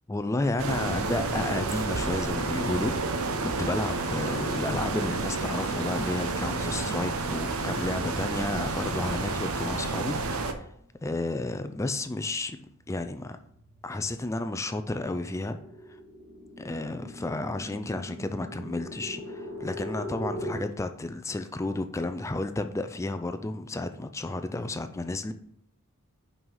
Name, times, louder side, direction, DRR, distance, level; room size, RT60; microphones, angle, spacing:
voice 1, 0.1-10.7 11.0-13.4 13.8-15.6 16.6-25.3, left 2 dB, 15° left, 0.3 m, -32 dB
sound 1, 0.6-10.5, right 3 dB, 75° right, 0.8 m, -30 dB
sound 2, 10.9-11.2 11.6-20.5, equal, 50° right, 2.1 m, -41 dB
5.7 x 5.5 x 5.5 m
head